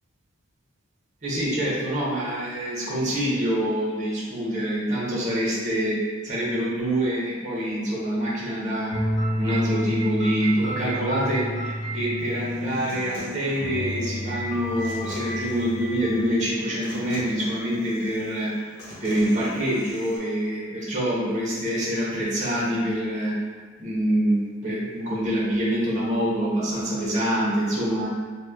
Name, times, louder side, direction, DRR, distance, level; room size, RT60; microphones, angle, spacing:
voice 1, 1.2-6.0 6.2-8.9 9.4-18.7 19.0-23.3 23.8-28.1, equal, 40° right, -7 dB, 0.9 m, -25 dB
sound 1, 8.9-13.2 13.6-16.2, equal, 25° left, 0.8 m, -30 dB
Human voice / Acoustic guitar, 12.2-20.2, left 1 dB, 55° left, 0.9 m, -42 dB
3.0 x 2.2 x 3.5 m, 1.5 s
head